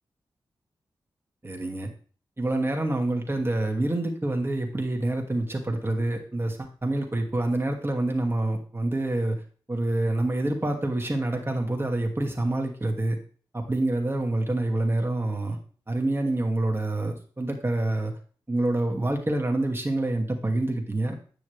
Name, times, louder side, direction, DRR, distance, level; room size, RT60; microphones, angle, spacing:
voice 1, 1.4-1.9 2.4-9.4 9.7-13.2 13.5-15.6 15.9-18.1 18.5-21.1, right 2 dB, 25° right, 1 dB, 2.5 m, -27 dB
9.9 x 6.2 x 3.4 m, 0.41 s
cardioid pair, 45°, 9 cm